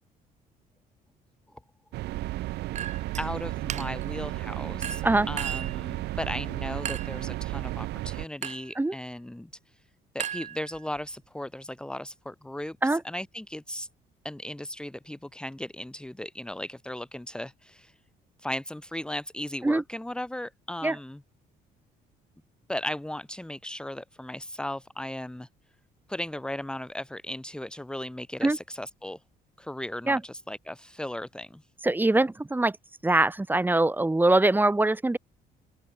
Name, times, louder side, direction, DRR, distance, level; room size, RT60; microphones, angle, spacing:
sound 1, 1.9-8.3, right 17 dB, 80° right, 1.0 m, -33 dB
Chink clink, 2.7-3.3 3.7-4.1 4.8-5.8 6.8-7.2 8.4-8.8 10.2-11.0, right 9 dB, 45° right, 1.2 m, -36 dB
voice 1, 3.2-9.5 10.1-13.9 14.2-17.9 18.4-21.2 22.7-25.5 26.1-29.2 29.6-31.6, left 1 dB, 5° left, 2.2 m, -36 dB
voice 2, 31.8-32.8 33.0-35.2, right 2 dB, 10° right, 3.5 m, -23 dB
open air
cardioid pair, 110°, 17 cm